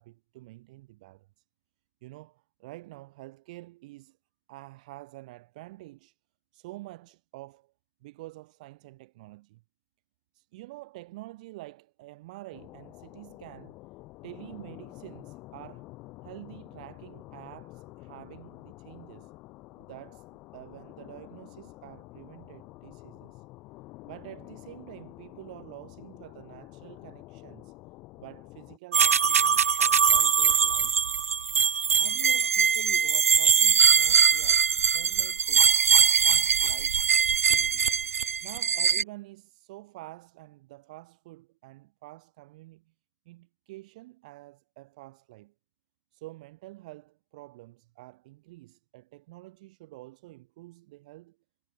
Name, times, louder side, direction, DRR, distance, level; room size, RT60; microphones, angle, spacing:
voice 1, 0.0-1.4 2.0-4.2 4.5-6.2 6.5-7.7 8.0-9.6 10.3-13.8 14.2-15.9 16.2-19.3 19.7-23.4 24.0-27.7 28.2-31.0 32.0-35.8 36.2-37.0 37.4-37.9 38.4-42.9 43.3-45.5 46.1-51.4, right 19 dB, 30° right, 2.5 m, -47 dB
sound 1, 12.5-28.8, left 21 dB, 20° left, 3.0 m, -48 dB
sound 2, 28.9-39.0, right 7 dB, 65° right, 0.4 m, -22 dB
hypercardioid pair, 150°, 8 cm